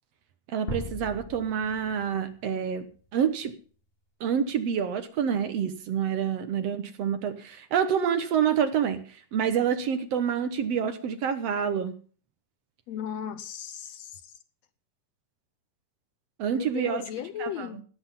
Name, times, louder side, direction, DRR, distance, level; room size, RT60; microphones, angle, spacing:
voice 1, 0.5-2.9 3.1-3.5 4.2-12.0 16.4-17.0 17.4-17.7, right 8 dB, 65° right, 1.9 m, -27 dB
sound 1, 0.7-3.1, left 1 dB, 20° left, 1.8 m, -39 dB
voice 2, 12.9-14.3 16.5-17.8, left 9 dB, 75° left, 1.7 m, -36 dB
18.5 x 7.9 x 5.4 m
omnidirectional pair, 3.6 m